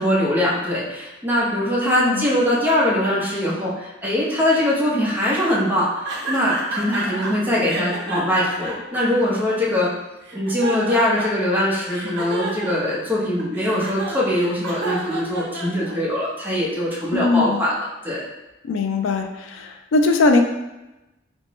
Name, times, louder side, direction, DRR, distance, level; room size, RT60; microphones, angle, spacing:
voice 1, 0.0-9.9 10.3-18.2, left 1 dB, 10° right, -6 dB, 0.8 m, -22 dB
voice 2, 1.8-2.3 17.1-17.6 18.6-20.4, left 3 dB, 85° left, 5 dB, 0.4 m, -20 dB
sound 1, 6.0-7.3 7.6-9.8 10.2-11.5 11.9-16.2, right 2 dB, 65° right, 0.6 m, -30 dB
4.3 x 2.1 x 3.0 m, 1.0 s
head